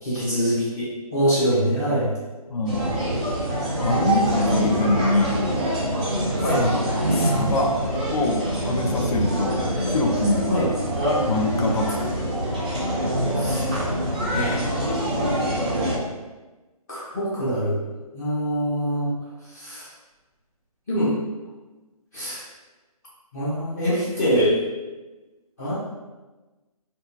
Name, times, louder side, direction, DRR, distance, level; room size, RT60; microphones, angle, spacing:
voice 1, 0.0-2.1 6.3-6.7 10.5-10.7 13.4-13.7 14.3-14.6 16.9-17.8 18.1-19.1 19.5-19.9 20.9-21.1 22.1-22.4 23.3-24.6 25.6-25.7, equal, 25° left, -10 dB, 0.6 m, -24 dB
voice 2, 2.5-2.8 3.8-5.4 6.6-6.8 7.1-7.7 8.1-9.5 9.9-10.5 11.2-12.1, left 2 dB, 75° left, 2 dB, 0.5 m, -24 dB
sound 1, 2.7-16.0, right 1 dB, 10° right, 0.3 m, -25 dB
2.7 x 2.3 x 2.5 m, 1.2 s
figure-of-eight pair, 150°, 19 cm